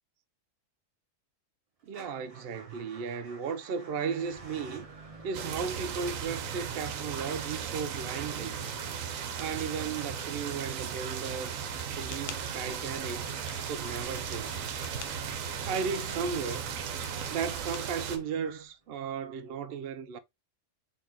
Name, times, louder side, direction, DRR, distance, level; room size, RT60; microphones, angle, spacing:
voice 1, 1.8-4.9 5.2-8.6 9.4-13.2 13.7-14.6 15.6-16.7 17.3-20.2, right 6 dB, 65° right, 0.6 m, -35 dB
Motor vehicle (road) / Engine starting / Idling, 1.9-18.8, right 3 dB, 30° right, 0.8 m, -52 dB
sound 1, 5.3-18.2, right 7 dB, 80° right, 1.1 m, -36 dB
sound 2, 11.7-18.1, left 7 dB, 60° left, 0.7 m, -49 dB
4.1 x 3.5 x 2.8 m
omnidirectional pair, 1.4 m